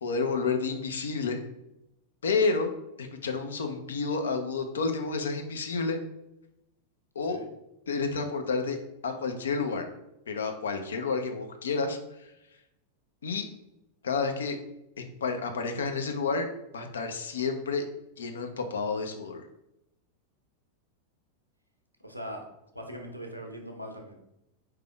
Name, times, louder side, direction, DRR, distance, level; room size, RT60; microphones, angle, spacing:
voice 1, 0.0-1.4 2.2-2.7 3.0-6.0 7.1-7.4 7.9-8.8 9.0-9.9 10.3-12.3 13.2-13.5 14.0-14.6 15.0-16.5 16.7-17.9 18.2-19.5, left 4 dB, 65° left, 6 dB, 0.6 m, -30 dB
voice 2, 22.0-22.5 22.7-24.2, equal, 90° right, 3 dB, 0.7 m, -40 dB
4.4 x 3.4 x 3.3 m, 0.87 s
figure-of-eight pair, 90°, 0 cm